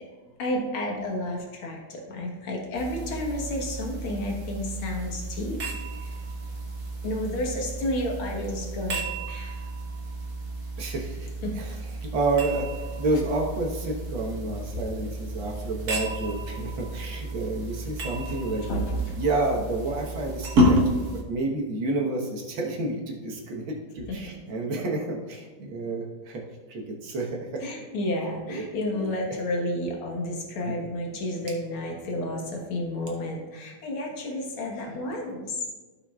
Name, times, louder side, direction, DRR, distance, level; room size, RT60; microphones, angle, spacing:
voice 1, 0.4-5.6 6.0-6.2 7.0-9.7 11.4-11.6 18.3-18.4 18.7-19.0 24.1-24.2 27.6-35.6, left 1 dB, 85° left, 0 dB, 2.2 m, -31 dB
sound 1, 2.7-21.2, right 1 dB, 50° right, 1.6 m, -31 dB
voice 2, 10.8-11.3 11.6-12.7 13.0-18.7 19.2-26.4 26.7-27.6 28.5-28.6 28.9-29.1 30.6-30.7, right 2 dB, 75° right, 0 dB, 2.1 m, -30 dB
15.0 x 5.7 x 2.4 m, 1.2 s
omnidirectional pair, 2.2 m